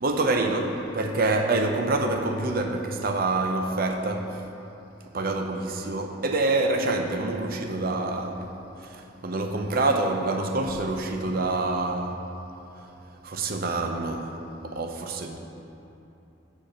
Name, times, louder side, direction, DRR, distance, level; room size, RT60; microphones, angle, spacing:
voice 1, 0.0-4.3 5.1-8.5 9.2-12.2 13.2-14.4 14.6-15.4, right 2 dB, 50° right, 4 dB, 0.7 m, -26 dB
8.6 x 5.1 x 6.6 m, 2.9 s
head